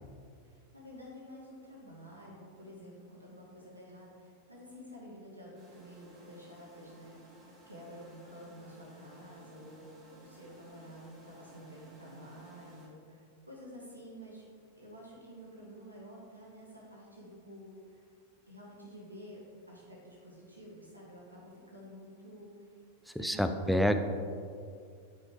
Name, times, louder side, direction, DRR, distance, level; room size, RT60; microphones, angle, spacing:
voice 1, 0.4-14.4 14.7-18.1 18.5-22.7 23.1-23.9, equal, 85° right, -4 dB, 1.4 m, -50 dB
sound 1, 5.5-12.9, right 1 dB, 20° right, 1.8 m, -57 dB
voice 2, 23.1-23.9, equal, ahead, 8 dB, 0.4 m, -28 dB
8.8 x 4.8 x 3.7 m, 2.3 s
figure-of-eight pair, 90°, 0 cm